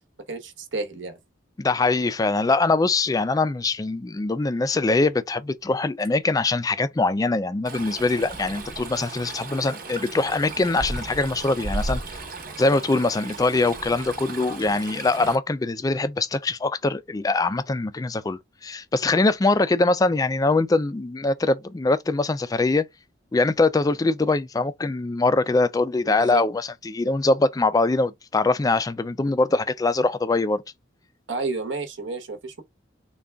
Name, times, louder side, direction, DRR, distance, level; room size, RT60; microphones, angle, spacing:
voice 1, 0.3-1.2 26.0-26.4 31.3-32.6, right 3 dB, 75° right, 1.0 m, -31 dB
voice 2, 1.6-12.0 12.6-22.9 23.3-30.6, left 3 dB, 20° left, 0.3 m, -23 dB
Stream, 7.7-15.4, right 2 dB, 50° right, 0.9 m, -35 dB
3.7 x 2.3 x 3.3 m
head